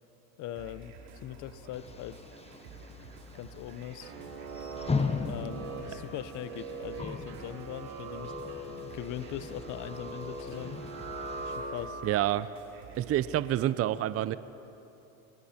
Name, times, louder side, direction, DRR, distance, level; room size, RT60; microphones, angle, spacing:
voice 1, 0.4-0.9 1.2-2.2 3.3-4.1 5.2-8.3 8.6-10.8 11.4-12.0, left 12 dB, 45° left, 16 dB, 0.8 m, -41 dB
sound 1, 0.5-13.7, right 2 dB, 55° right, 3.6 m, -51 dB
sound 2, 1.7-11.6, left 4 dB, 15° left, 1.0 m, -39 dB
sound 3, 3.9-12.1, right 2 dB, 80° right, 3.1 m, -41 dB
voice 2, 12.0-12.5 13.0-14.4, right 13 dB, 35° right, 15 dB, 0.6 m, -28 dB
27.5 x 23.5 x 4.4 m, 2.9 s
supercardioid pair, 100°, 42 cm